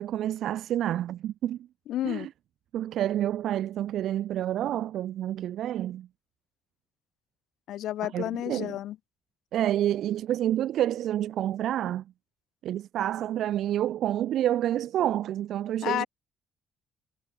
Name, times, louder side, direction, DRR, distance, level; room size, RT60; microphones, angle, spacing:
voice 1, 0.0-1.7 2.0-2.3 2.7-6.1 8.0-8.8 9.5-12.1 12.6-16.1, right 12 dB, 60° right, 2.6 m, -28 dB
voice 2, 1.9-2.3 7.7-9.0 15.8-16.1, left 13 dB, 70° left, 2.6 m, -31 dB
cardioid pair, 170°, 0 cm